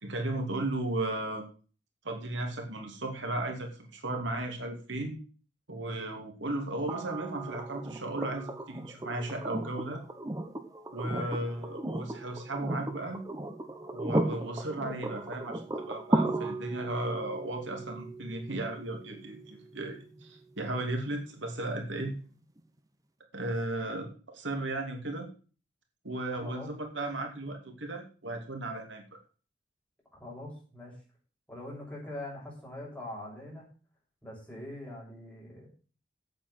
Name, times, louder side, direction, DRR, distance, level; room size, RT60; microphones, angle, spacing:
voice 1, 0.0-1.5 2.0-5.2 5.7-10.0 10.9-13.2 13.9-22.1 23.3-25.3 26.0-29.0, right 2 dB, 75° right, 3 dB, 2.9 m, -35 dB
sound 1, 6.9-20.8 22.6-22.7, right 1 dB, 20° right, 1.2 m, -36 dB
voice 2, 11.0-11.4 26.4-26.7 30.2-30.9 31.5-33.7 34.2-35.7, left 1 dB, 5° left, -4 dB, 7.1 m, -43 dB
8.8 x 8.8 x 7.8 m, 0.38 s
head